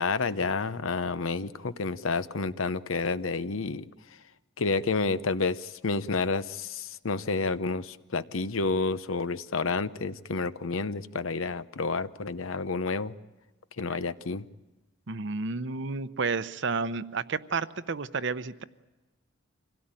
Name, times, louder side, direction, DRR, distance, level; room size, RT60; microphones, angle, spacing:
voice 1, 0.0-3.8 4.6-13.1 13.8-14.5, left 4 dB, 85° left, 14 dB, 0.8 m, -30 dB
voice 2, 15.1-18.6, right 4 dB, 60° right, 14 dB, 0.8 m, -31 dB
25.5 x 17.0 x 8.9 m, 1.2 s
head